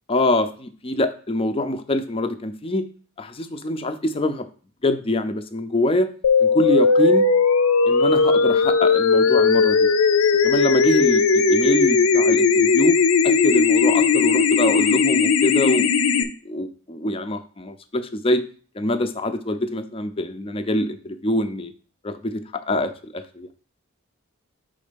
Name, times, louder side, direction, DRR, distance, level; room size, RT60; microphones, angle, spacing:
voice 1, 0.1-2.9 3.2-4.5 4.8-6.1 6.4-7.3 7.8-9.9 10.4-13.0 13.2-15.9 16.2-18.4 18.7-21.7 22.0-23.5, left 1 dB, 25° left, 9 dB, 0.5 m, -24 dB
sound 1, 6.2-16.2, left 5 dB, 80° left, 0.5 m, -17 dB
5.3 x 3.8 x 5.1 m, 0.41 s
head